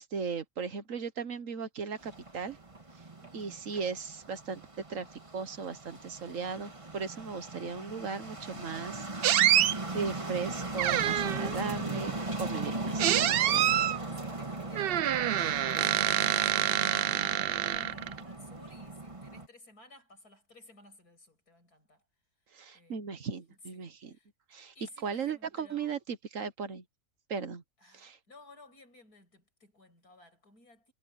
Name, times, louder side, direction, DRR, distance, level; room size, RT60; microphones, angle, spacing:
voice 1, 0.0-2.6 3.3-4.6 4.9-9.7 9.9-13.9 22.5-24.1 24.5-24.7 25.0-26.8 27.3-27.6 27.9-28.2, right 5 dB, 60° right, 1.6 m, -37 dB
sound 1, 2.0-19.5, right 2 dB, 20° right, 1.8 m, -39 dB
voice 2, 3.2-3.7 14.1-22.0 22.7-24.3 24.7-26.0 27.8-30.9, left 2 dB, 85° left, 8.4 m, -57 dB
sound 2, 9.2-9.7 10.8-11.5 13.0-14.0 14.7-18.2, right 11 dB, 85° right, 0.5 m, -26 dB
omnidirectional pair, 1.6 m